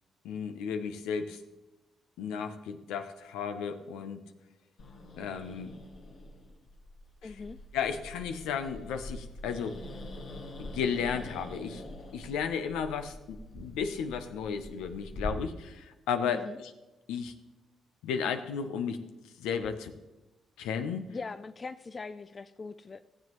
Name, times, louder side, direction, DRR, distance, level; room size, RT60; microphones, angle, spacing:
voice 1, 0.2-1.4 2.2-4.2 5.2-5.7 7.2-7.4 7.7-9.8 10.6-11.8 12.1-16.7 17.1-17.3 18.0-19.0 19.4-19.9 20.6-21.1, left 6 dB, 90° left, 8 dB, 0.7 m, -34 dB
Growling, 4.8-15.3, left 1 dB, 75° left, 1.9 m, -45 dB
voice 2, 7.2-7.6 16.3-16.6 21.1-23.0, left 4 dB, 40° left, 10 dB, 0.4 m, -41 dB
15.0 x 7.6 x 3.1 m, 1.0 s
supercardioid pair, 60°, 0 cm